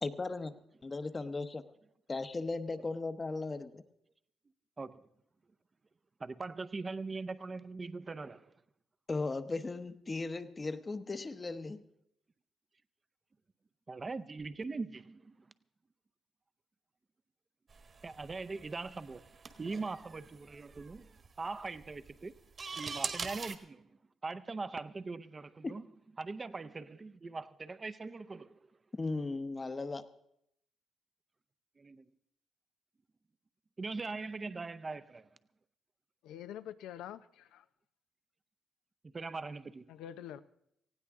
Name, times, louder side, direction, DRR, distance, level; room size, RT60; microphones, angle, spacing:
voice 1, 0.0-0.5 0.8-1.6 2.1-3.8 9.1-11.8 25.6-25.7 29.0-30.0, left 3 dB, 25° left, 0.9 m, -37 dB
voice 2, 4.8-5.1 6.2-8.5 13.9-15.4 18.0-19.2 19.6-21.1 21.4-22.3 22.8-23.9 24.2-25.8 26.2-28.6 31.8-32.0 33.8-35.3 39.0-39.8, right 3 dB, 30° right, 0.6 m, -41 dB
sound 1, 17.7-23.6, right 5 dB, 45° right, 1.5 m, -44 dB
voice 3, 36.2-37.6 39.9-40.4, left 10 dB, 90° left, 0.6 m, -46 dB
18.5 x 16.0 x 3.6 m
cardioid pair, 90°, 0 cm